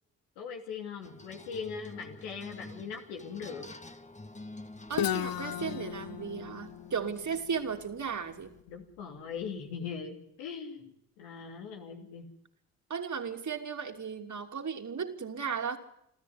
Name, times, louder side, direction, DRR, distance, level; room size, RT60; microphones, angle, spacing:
voice 1, 0.4-3.7 8.7-12.3, left 6 dB, 85° left, 3 dB, 2.8 m, -40 dB
sound 1, 1.0-8.6, left 2 dB, 20° left, 1.7 m, -48 dB
Guitar, 4.9-8.7, left 11 dB, 60° left, 0.9 m, -36 dB
voice 2, 4.9-8.5 12.9-15.8, right 6 dB, 50° right, 5 dB, 2.9 m, -35 dB
27.0 x 13.5 x 9.7 m, 0.76 s
hypercardioid pair, 40°, 38 cm